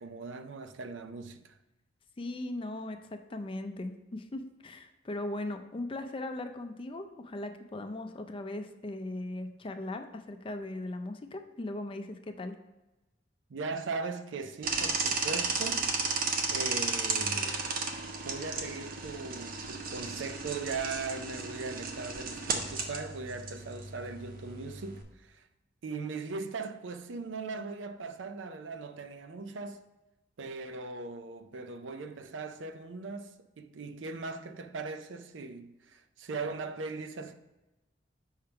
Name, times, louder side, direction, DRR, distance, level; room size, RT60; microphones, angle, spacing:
voice 1, 0.0-1.6 13.5-15.9 16.5-17.6 18.2-25.5 25.8-29.8 30.4-37.3, right 4 dB, 90° right, 0.5 m, -39 dB
voice 2, 2.2-12.6, left 2 dB, 30° left, 0.4 m, -38 dB
sound 1, 14.6-25.0, right 4 dB, 50° right, 0.7 m, -34 dB
5.6 x 3.4 x 5.7 m
head